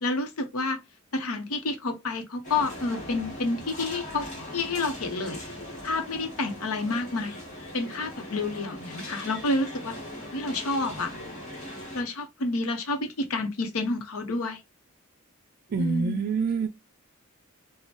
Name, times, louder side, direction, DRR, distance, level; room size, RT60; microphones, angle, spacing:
voice 1, 0.0-0.8 1.1-4.3 4.5-5.4 5.8-7.4 7.7-10.0 10.3-11.1 11.9-14.6 15.8-16.3, left 3 dB, 80° left, 0.7 m, -29 dB
sound 1, 2.4-12.0, left 1 dB, 35° left, 1.1 m, -40 dB
voice 2, 15.7-16.7, right 4 dB, 45° right, 0.3 m, -26 dB
4.2 x 2.1 x 3.0 m
head